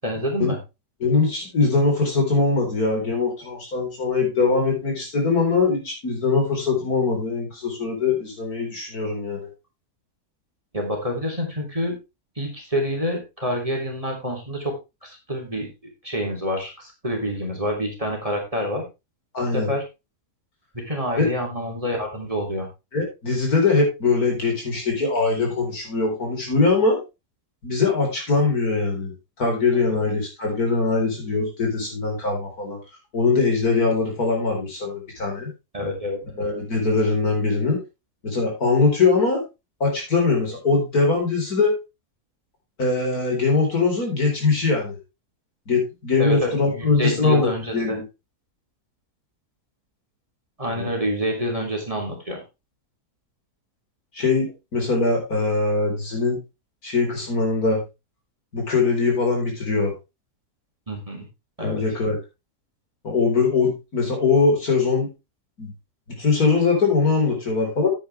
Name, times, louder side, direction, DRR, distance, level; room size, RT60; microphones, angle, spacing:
voice 1, 0.0-0.6 10.7-11.9 12.4-14.7 15.0-15.7 16.0-18.8 19.5-19.8 20.7-22.7 29.7-30.0 35.7-36.2 46.2-48.0 50.6-52.4 60.9-61.2 61.6-61.8, equal, 20° right, 1 dB, 3.1 m, -27 dB
voice 2, 1.0-9.5 19.3-19.7 21.2-21.3 22.9-27.0 27.6-29.1 29.4-32.8 33.1-35.5 36.4-37.8 38.2-39.4 39.8-41.8 42.8-45.0 45.7-48.0 50.7-50.9 54.1-56.4 56.8-57.8 58.5-59.9 61.6-62.2 63.0-65.1 65.6-65.7 66.1-67.9, left 4 dB, 65° left, 1 dB, 4.6 m, -22 dB
9.9 x 9.3 x 3.3 m, 0.25 s
omnidirectional pair, 1.7 m